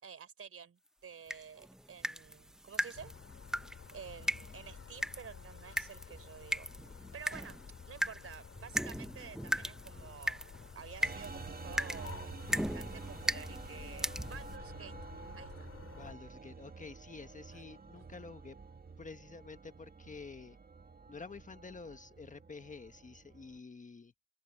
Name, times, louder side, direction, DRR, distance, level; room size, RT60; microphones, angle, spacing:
voice 1, 0.0-3.1 3.9-6.7 6.9-15.0 15.4-15.7 17.5-17.6, right 7 dB, 50° right, 3.9 m, -51 dB
sound 1, 1.3-14.6, equal, ahead, 0.8 m, -39 dB
sound 2, 2.9-16.1, left 7 dB, 50° left, 7.4 m, -51 dB
sound 3, 11.0-23.6, right 4 dB, 30° right, 2.0 m, -49 dB
voice 2, 15.9-18.6 19.0-20.6 21.1-24.1, left 4 dB, 25° left, 1.2 m, -49 dB
open air
cardioid pair, 90°, 30 cm